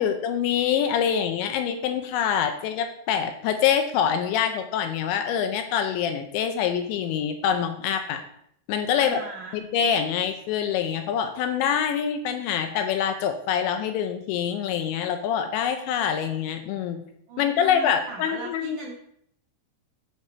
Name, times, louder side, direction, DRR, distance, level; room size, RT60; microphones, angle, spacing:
voice 1, 0.0-8.2 8.7-9.2 9.5-17.0 17.4-18.8, left 8 dB, 80° left, 7 dB, 2.8 m, -25 dB
voice 2, 9.0-9.6 17.3-18.9, right 3 dB, 75° right, -1 dB, 1.8 m, -39 dB
8.4 x 7.0 x 4.3 m, 0.69 s
omnidirectional pair, 5.6 m